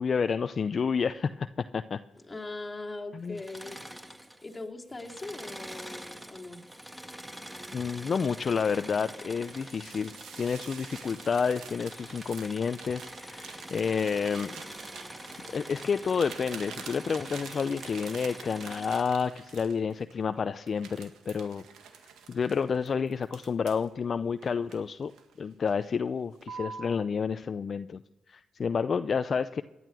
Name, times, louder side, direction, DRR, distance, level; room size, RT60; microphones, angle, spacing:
voice 1, 0.0-1.5 1.7-2.0 3.1-3.4 7.7-10.1 10.4-14.6 15.5-21.6 22.3-25.1 25.4-28.0 28.3-29.6, left 6 dB, 50° left, 11 dB, 0.5 m, -30 dB
voice 2, 2.3-3.8 4.4-6.6, left 2 dB, 20° left, -1 dB, 2.6 m, -40 dB
Engine / Mechanisms, 3.3-4.6 4.9-19.0, equal, 10° right, 1.7 m, -45 dB
sound 1, 9.4-20.2 20.7-23.9 24.4-25.3 25.7-26.0 26.4-27.0, right 6 dB, 80° right, 1.8 m, -47 dB
18.0 x 11.0 x 6.2 m, 1.0 s
cardioid pair, 70°, 0 cm